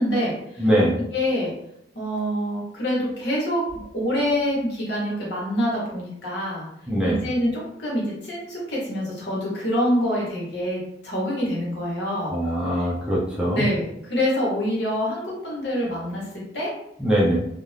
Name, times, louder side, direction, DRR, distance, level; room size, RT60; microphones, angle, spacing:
voice 1, 0.0-0.7 1.0-1.5 1.9-6.7 7.0-12.3 12.7-12.9 13.5-16.3 16.5-16.7, equal, 70° left, -4 dB, 1.1 m, -26 dB
voice 2, 0.6-1.0 6.9-7.2 12.3-13.6 17.0-17.4, equal, 5° right, -6 dB, 0.4 m, -22 dB
2.5 x 2.3 x 3.3 m, 0.76 s
head